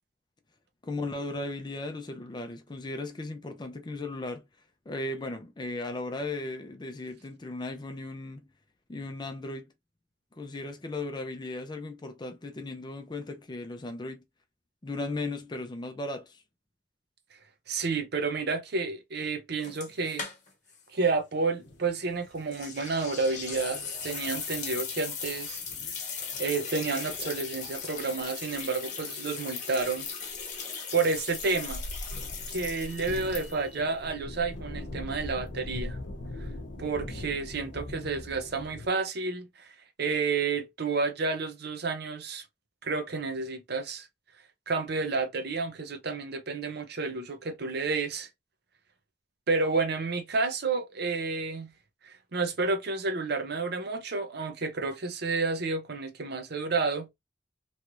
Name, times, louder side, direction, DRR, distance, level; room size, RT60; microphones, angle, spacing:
voice 1, 0.8-4.4 4.9-8.5 8.9-9.7 10.4-14.2 14.8-16.4, left 2 dB, 25° left, 0.5 m, -36 dB
voice 2, 17.7-20.3 20.9-25.6 26.4-30.1 30.9-31.8 32.5-36.0 36.8-39.7 40.0-42.4 42.8-44.1 44.7-48.3 49.5-51.7 52.3-57.1, right 4 dB, 60° right, 0.7 m, -30 dB
sound 1, 19.6-20.8 21.0-21.1 22.5-33.8, left 5 dB, 40° left, 1.0 m, -38 dB
sound 2, 21.6-24.9 25.2-27.8 30.3-30.4 31.3-38.9, left 1 dB, 80° left, 0.8 m, -41 dB
3.1 x 2.4 x 3.0 m
head